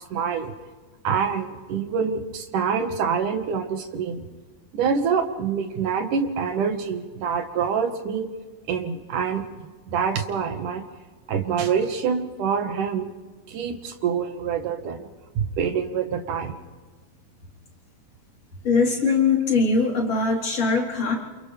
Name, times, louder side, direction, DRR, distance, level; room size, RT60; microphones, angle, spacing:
voice 1, 0.1-0.5 1.0-4.2 4.7-8.3 8.7-9.4 9.9-10.9 11.3-13.1 13.5-15.0 15.4-16.6, right 6 dB, 75° right, 6 dB, 3.0 m, -26 dB
voice 2, 18.6-21.2, left 4 dB, 45° left, -3 dB, 4.7 m, -21 dB
28.5 x 28.0 x 3.4 m, 1.4 s
omnidirectional pair, 3.7 m